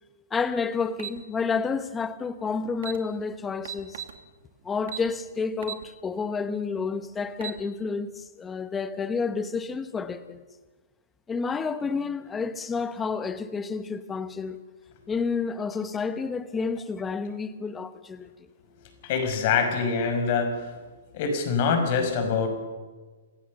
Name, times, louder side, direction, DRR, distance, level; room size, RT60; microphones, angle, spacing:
voice 1, 0.3-4.0 4.6-10.4 11.3-14.6 15.1-18.3, left 5 dB, 10° left, 1.1 m, -30 dB
sound 1, 1.0-1.2 2.4-2.5 2.7-3.0 3.6-4.2 4.9-5.1 5.6-5.8 6.3-6.4 7.2-7.6, right 10 dB, 65° right, 2.4 m, -36 dB
voice 2, 19.0-20.8 21.1-22.5, left 5 dB, 45° left, 6.0 m, -25 dB
27.0 x 16.5 x 6.8 m
hypercardioid pair, 150°, 0 cm